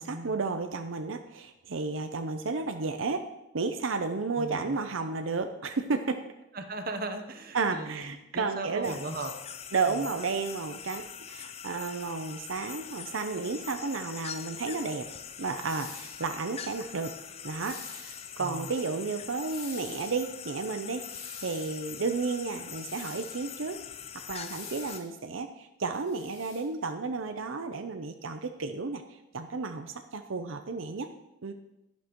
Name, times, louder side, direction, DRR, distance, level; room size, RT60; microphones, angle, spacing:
voice 1, 0.0-3.2 3.5-6.2 7.5-9.0 9.7-15.1 15.4-17.2 17.4-23.8 24.3-29.0 29.3-31.1 31.4-31.5, right 4 dB, 80° right, 7 dB, 0.6 m, -32 dB
voice 2, 4.4-4.7 6.5-8.0 8.3-9.3 18.4-18.7, right 2 dB, 45° right, 6 dB, 0.9 m, -37 dB
sound 1, 8.8-25.0, left 8 dB, 30° left, 0.4 m, -43 dB
sound 2, 15.6-16.3 17.5-18.2 19.4-20.2 21.0-21.8 22.8-23.4 24.4-25.1 25.9-26.6, left 5 dB, 75° left, 4.3 m, -46 dB
11.5 x 10.5 x 3.0 m, 0.89 s
head